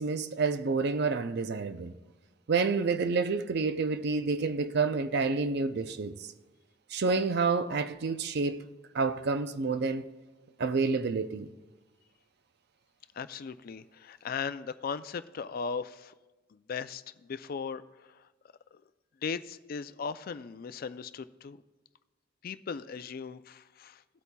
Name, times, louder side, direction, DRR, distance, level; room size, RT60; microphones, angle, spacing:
voice 1, 0.0-1.9 2.5-6.3 6.9-8.7 8.9-10.0 10.6-11.5, right 4 dB, 55° right, 0.5 m, -29 dB
voice 2, 13.2-16.1 16.5-17.8 18.7-18.8 19.2-21.6 22.4-24.0, left 5 dB, 50° left, 0.4 m, -38 dB
18.0 x 8.3 x 2.3 m
head